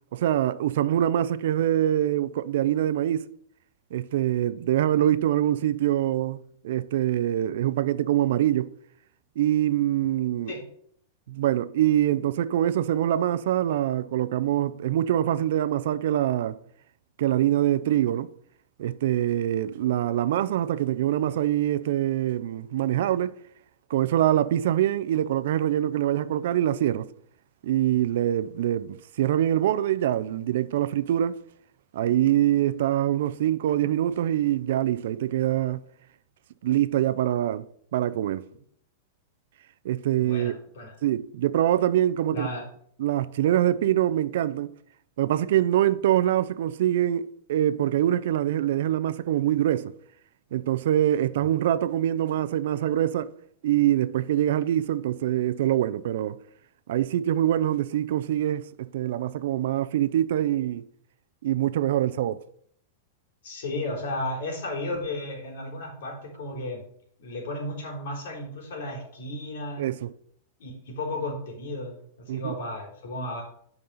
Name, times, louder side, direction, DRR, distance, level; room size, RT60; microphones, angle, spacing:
voice 1, 0.1-3.3 3.9-8.7 9.4-10.5 11.3-16.6 17.2-18.3 18.8-23.4 23.9-27.1 27.6-31.4 31.9-35.8 36.6-37.6 37.9-38.5 39.8-40.6 41.0-42.5 43.0-44.8 45.2-49.9 50.5-53.3 53.6-56.4 56.9-60.9 61.4-62.4 69.8-70.1 72.3-72.6, right 12 dB, 60° right, 0.5 m, -24 dB
voice 2, 40.2-40.9 42.3-42.6 63.4-66.8 67.2-69.8 70.6-72.0 72.3-73.4, left 1 dB, 60° left, 3.7 m, -34 dB
9.5 x 5.3 x 5.6 m
supercardioid pair, 175°, 0 cm